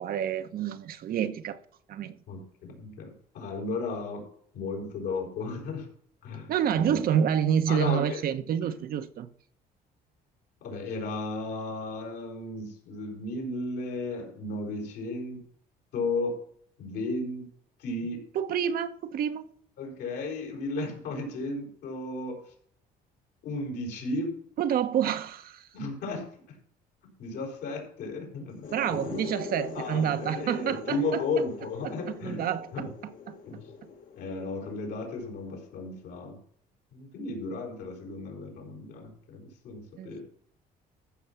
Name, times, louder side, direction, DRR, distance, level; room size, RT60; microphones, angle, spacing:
voice 1, 0.0-1.6 1.9-2.2 6.5-9.3 18.3-19.5 24.6-25.7 28.7-31.2 31.8-31.9 32.2-32.9 33.3-33.4 40.0-40.1, right 9 dB, 60° right, 1.0 m, -28 dB
voice 2, 2.3-4.2 4.5-5.9 6.2-7.0 7.7-8.2 8.6-8.7 10.6-15.4 15.9-16.4 16.8-17.5 17.8-18.2 19.8-22.5 23.4-24.3 25.7-26.6 27.0-29.2 29.7-32.9 33.4-33.7 34.2-36.4 36.9-40.2, left 3 dB, 80° left, 4.8 m, -34 dB
sound 1, 28.5-36.0, left 6 dB, 55° left, 1.5 m, -43 dB
14.5 x 6.0 x 5.8 m
cardioid pair, 110°, 17 cm